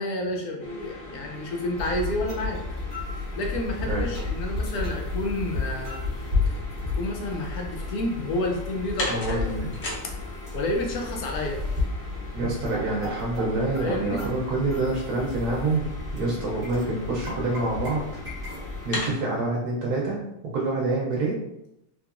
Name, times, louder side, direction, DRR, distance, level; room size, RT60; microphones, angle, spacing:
voice 1, 0.0-2.6 3.2-6.1 6.9-9.6 10.5-11.6 13.8-14.3, left 1 dB, 75° left, 1 dB, 1.1 m, -30 dB
sound 1, 0.6-19.2, left 1 dB, 45° left, 0.8 m, -40 dB
sound 2, 1.8-19.0, left 3 dB, 25° right, 1.5 m, -33 dB
voice 2, 9.1-9.7 12.3-15.9 16.1-18.0 18.8-20.2 20.5-21.4, right 2 dB, 85° right, -3 dB, 1.2 m, -26 dB
3.8 x 3.0 x 2.4 m, 0.82 s
omnidirectional pair, 1.6 m